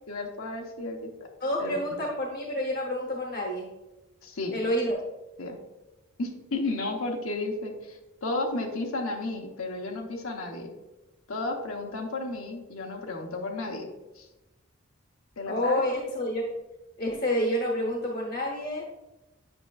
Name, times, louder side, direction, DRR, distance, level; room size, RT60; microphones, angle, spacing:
voice 1, 0.1-1.3 1.6-1.8 4.2-4.5 5.4-5.6 6.2-10.7 11.3-13.9 14.2-14.3 15.4-15.8, left 2 dB, 80° left, 1 dB, 0.9 m, -33 dB
voice 2, 1.4-3.7 4.5-5.0 15.5-16.5 17.0-18.8, left 1 dB, 50° left, 0 dB, 1.0 m, -28 dB
8.7 x 5.6 x 2.4 m, 1.0 s
head